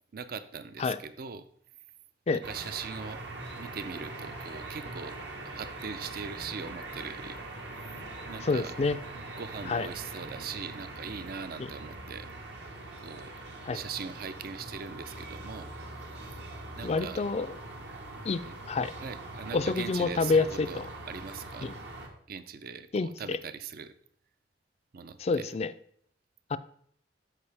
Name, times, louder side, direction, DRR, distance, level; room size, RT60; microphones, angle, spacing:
voice 1, 0.1-1.5 2.3-3.2 3.5-5.2 5.4-7.4 8.3-8.8 9.4-12.3 13.0-13.3 13.7-15.7 16.7-17.2 18.5-18.6 19.0-21.7 22.3-23.9 24.9-25.5, right 6 dB, 55° right, 12 dB, 0.5 m, -41 dB
sound 1, 2.4-22.1, right 2 dB, 70° right, 1.3 m, -42 dB
voice 2, 8.4-9.0 9.7-9.9 13.7-13.8 16.8-17.5 18.2-18.4 18.7-18.9 19.5-20.9 21.6-21.7 22.9-23.4 25.2-25.7 26.5-26.6, left 4 dB, 35° left, 13 dB, 0.3 m, -28 dB
12.5 x 4.7 x 3.4 m, 0.63 s
head